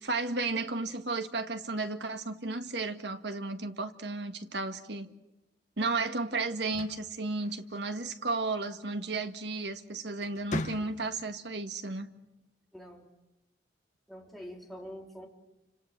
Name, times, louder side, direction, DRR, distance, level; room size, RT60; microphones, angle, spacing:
voice 1, 0.0-5.1 5.8-12.1, right 3 dB, 65° right, 8 dB, 1.8 m, -33 dB
sound 1, 6.5-8.0 9.5-9.8 10.2-11.3, left 1 dB, 40° left, 1.5 m, -39 dB
voice 2, 12.7-13.1 14.1-15.3, equal, ahead, 0 dB, 3.6 m, -45 dB
29.5 x 26.5 x 7.6 m, 0.97 s
head